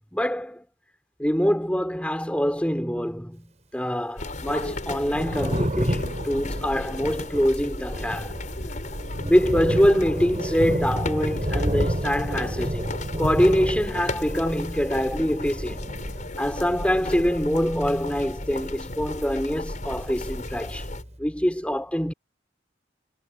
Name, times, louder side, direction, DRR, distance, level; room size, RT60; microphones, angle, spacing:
voice 1, 0.1-0.6 1.2-8.3 9.2-15.8 16.4-20.9 21.2-22.1, equal, 5° left, 3.4 m, -24 dB
sound 1, 4.2-21.0, left 1 dB, 45° left, 6.5 m, -34 dB
Thunder, 4.9-19.4 19.6-20.9, equal, 40° right, 7.5 m, -31 dB
head